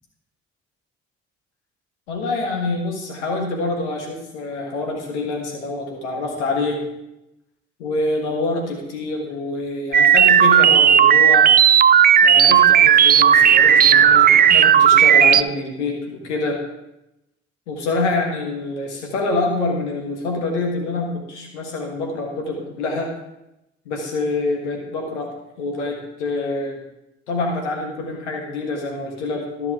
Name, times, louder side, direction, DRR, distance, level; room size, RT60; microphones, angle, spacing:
voice 1, 2.1-6.8 7.8-11.5 12.2-16.6 17.7-23.1 23.8-25.3 25.6-26.8 27.3-29.7, left 2 dB, 90° left, 1 dB, 1.5 m, -26 dB
sound 1, 9.9-15.4, right 9 dB, 30° right, 0.4 m, -12 dB
13.0 x 5.9 x 3.6 m, 0.90 s
hypercardioid pair, 40°, 34 cm